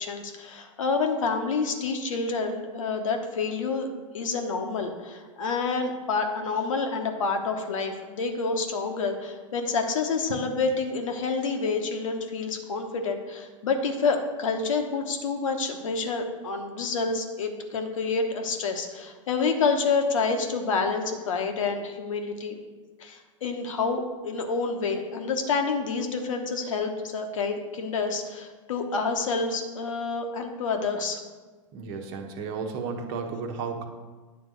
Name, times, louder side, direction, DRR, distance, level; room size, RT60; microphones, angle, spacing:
voice 1, 0.0-3.9 4.1-22.6 23.0-31.2, left 4 dB, 75° left, 4 dB, 1.1 m, -28 dB
voice 2, 31.7-33.9, right 5 dB, 50° right, 4 dB, 1.2 m, -33 dB
9.3 x 4.0 x 6.4 m, 1.3 s
hypercardioid pair, 100°, 17 cm